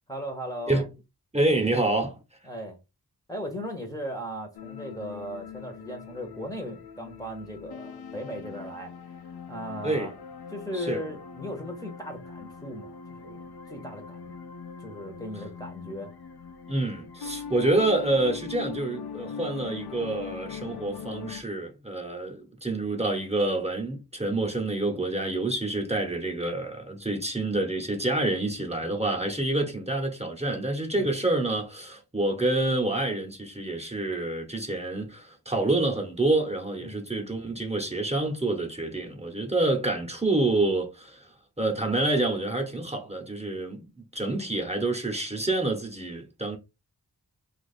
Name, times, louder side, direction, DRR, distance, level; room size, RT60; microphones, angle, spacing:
voice 1, 0.1-0.9 2.4-2.8 3.3-10.2 10.5-14.4 14.8-16.1 30.9-31.1 36.8-37.0, equal, 10° left, 0.8 m, -37 dB
voice 2, 1.3-2.2 9.8-10.1 10.7-11.0 16.7-46.6, right 2 dB, 15° right, 0.9 m, -27 dB
sound 1, 4.5-21.4, left 6 dB, 80° left, 0.6 m, -41 dB
2.9 x 2.5 x 4.1 m
wide cardioid pair, 70°, 37 cm